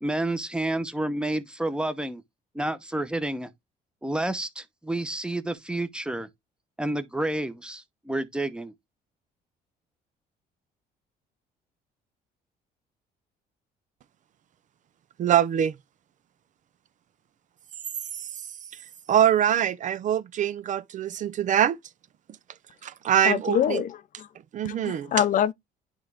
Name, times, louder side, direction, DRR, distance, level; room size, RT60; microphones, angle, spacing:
voice 1, 0.0-2.2 2.5-3.5 4.0-6.3 6.8-8.7, right 1 dB, 5° right, 0.9 m, -29 dB
voice 2, 15.2-15.7 18.2-18.3 19.1-21.8 22.8-23.8 24.5-25.1, right 10 dB, 50° right, 0.5 m, -23 dB
voice 3, 23.2-24.3 24.6-25.5, left 10 dB, 50° left, 0.5 m, -25 dB
10.0 x 3.6 x 3.4 m
cardioid pair, 110°, 17 cm